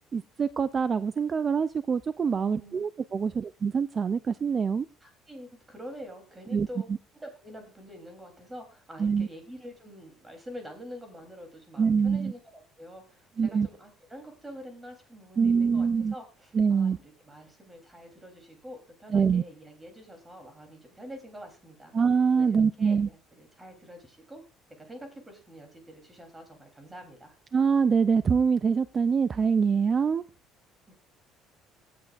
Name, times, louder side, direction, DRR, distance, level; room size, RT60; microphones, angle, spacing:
voice 1, 0.1-4.9 6.5-6.7 9.0-9.3 11.8-12.3 13.4-13.7 15.4-16.1 16.5-17.0 19.1-19.4 21.9-23.1 27.5-30.2, right 6 dB, 25° right, 0.4 m, -24 dB
voice 2, 2.3-2.9 3.2-3.4 5.0-21.9 22.3-24.4 24.8-27.3 30.9-31.0, equal, 10° right, 3.4 m, -46 dB
17.0 x 8.4 x 2.5 m
cardioid pair, 155°, 0 cm